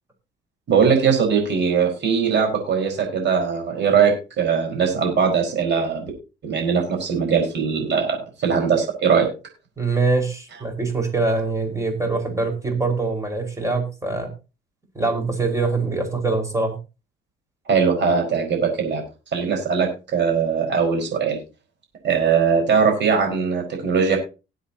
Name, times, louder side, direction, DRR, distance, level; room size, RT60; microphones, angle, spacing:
voice 1, 0.7-6.1 6.4-9.3 17.7-19.0 19.3-21.4 22.0-24.2, right 6 dB, 60° right, 1 dB, 4.9 m, -20 dB
voice 2, 9.8-14.3 14.9-16.8, right 3 dB, 15° right, 3 dB, 5.1 m, -23 dB
20.0 x 7.9 x 2.9 m, 0.30 s
cardioid pair, 90°, 20 cm